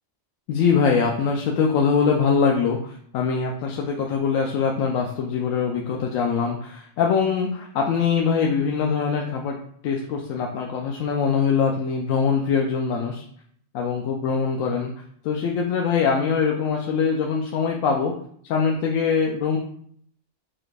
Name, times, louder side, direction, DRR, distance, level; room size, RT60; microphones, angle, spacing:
voice 1, 0.5-9.6 9.8-13.2 13.7-14.9 15.2-18.1 18.5-19.6, left 6 dB, 90° left, 0 dB, 1.0 m, -23 dB
5.8 x 2.4 x 3.2 m, 0.63 s
omnidirectional pair, 1.3 m